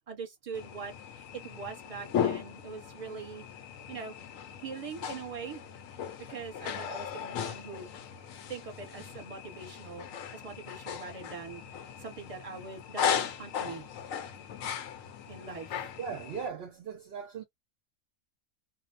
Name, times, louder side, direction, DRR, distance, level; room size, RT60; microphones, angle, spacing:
voice 1, 0.1-3.5 3.9-4.2 4.6-5.6 6.3-7.9 8.5-10.1 10.3-13.9 15.3-15.9, right 5 dB, 30° right, 0.9 m, -42 dB
sound 1, 0.5-16.5, left 8 dB, 80° left, 1.0 m, -37 dB
voice 2, 16.0-17.4, right 6 dB, 60° right, 0.7 m, -39 dB
2.5 x 2.1 x 2.5 m
omnidirectional pair, 1.4 m